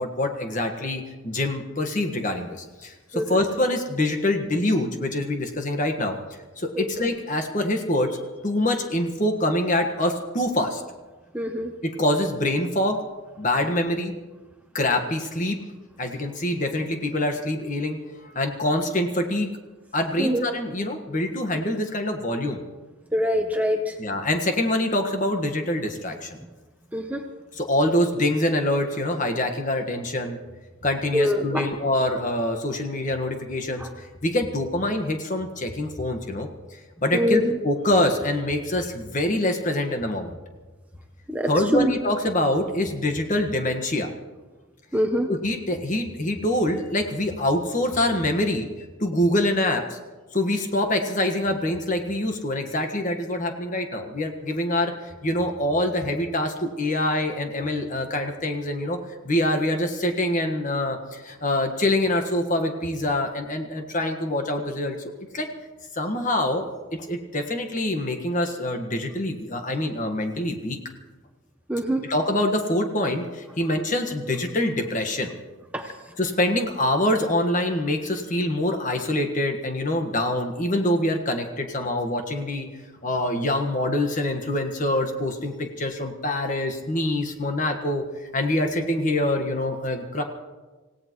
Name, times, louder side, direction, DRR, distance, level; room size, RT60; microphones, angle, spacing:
voice 1, 0.0-6.1 6.6-10.8 11.8-13.0 13.4-14.1 14.7-15.6 16.0-19.5 19.9-22.6 24.0-26.4 27.5-30.4 30.8-36.5 37.0-40.3 41.5-44.1 45.3-48.7 49.0-50.0 50.3-59.0 59.2-65.0 65.3-65.5 65.9-70.8 72.0-75.3 76.2-82.7 83.0-90.2, left 1 dB, 40° left, 5 dB, 1.5 m, -25 dB
voice 2, 11.3-11.7 20.2-20.5 23.1-23.9 26.9-27.2 31.1-31.7 33.8-33.9 37.1-37.5 41.3-41.9 44.9-45.3 71.7-72.0 75.7-75.9, equal, 5° right, 4 dB, 0.7 m, -24 dB
26.5 x 17.0 x 3.1 m, 1.3 s
head